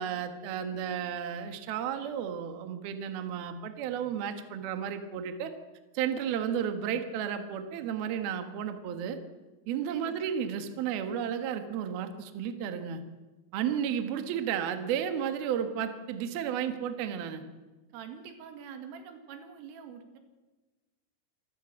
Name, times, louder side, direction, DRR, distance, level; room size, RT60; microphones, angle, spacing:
voice 1, 0.0-5.5 5.9-9.2 9.7-13.0 13.5-17.4, right 8 dB, 60° right, 8 dB, 2.9 m, -33 dB
voice 2, 17.9-20.2, right 7 dB, 80° right, 7 dB, 4.6 m, -45 dB
26.5 x 14.0 x 8.3 m, 1.2 s
omnidirectional pair, 5.8 m